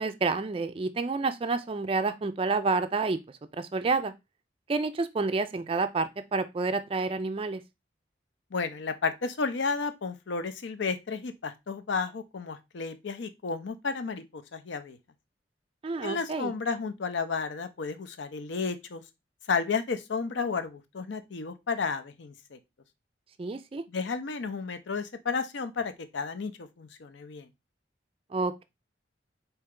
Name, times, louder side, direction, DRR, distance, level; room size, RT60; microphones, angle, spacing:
voice 1, 0.0-3.2 3.6-4.1 4.7-7.6 15.8-16.5 23.4-23.8 28.3-28.6, right 3 dB, 30° right, 0.3 m, -29 dB
voice 2, 8.5-15.0 16.0-19.0 19.5-22.6 23.9-27.5, left 4 dB, 70° left, 0.6 m, -32 dB
4.3 x 2.9 x 3.6 m
head